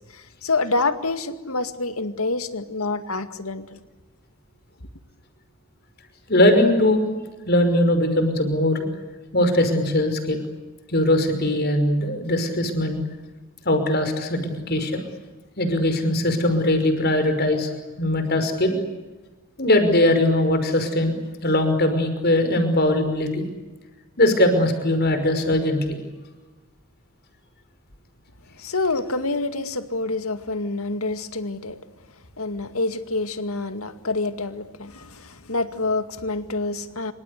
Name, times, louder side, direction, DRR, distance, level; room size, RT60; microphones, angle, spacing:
voice 1, 0.1-3.8 28.6-31.8 32.4-37.1, left 3 dB, 85° left, 10 dB, 2.2 m, -27 dB
voice 2, 6.3-7.1 7.5-8.9 9.3-10.4 10.9-13.0 13.7-15.0 15.6-17.7 18.0-18.8 19.6-21.1 21.4-23.5 24.2-26.0, left 1 dB, 50° left, 7 dB, 5.7 m, -20 dB
27.5 x 25.5 x 8.3 m, 1.2 s
head